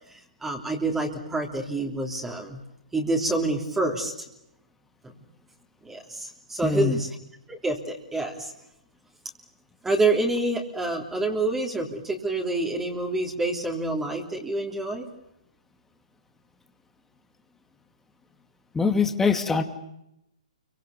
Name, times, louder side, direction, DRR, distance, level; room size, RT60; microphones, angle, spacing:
voice 1, 0.1-2.6 2.9-4.1 5.0-5.1 5.8-7.1 7.5-8.5 9.8-15.1, right 2 dB, 10° right, 0 dB, 3.3 m, -27 dB
voice 2, 6.6-7.0 18.7-19.6, left 5 dB, 10° left, 6 dB, 2.4 m, -23 dB
29.0 x 24.5 x 7.1 m, 0.84 s
hypercardioid pair, 130°, 4 cm